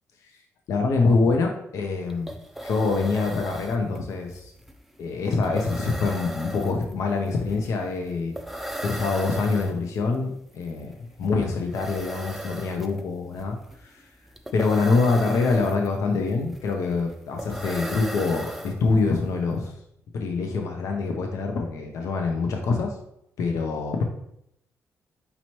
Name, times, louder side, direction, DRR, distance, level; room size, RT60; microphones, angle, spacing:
voice 1, 0.7-2.3 2.6-4.5 5.0-8.3 8.8-10.9 11.2-13.6 13.8-14.1 14.5-19.7 20.1-22.9 23.4-24.0, left 4 dB, 75° left, 3 dB, 0.5 m, -25 dB
sound 1, 1.8-1.9 2.1-19.2, right 1 dB, 5° right, 0.4 m, -37 dB
5.3 x 2.9 x 2.9 m, 0.76 s
cardioid pair, 130°, 5 cm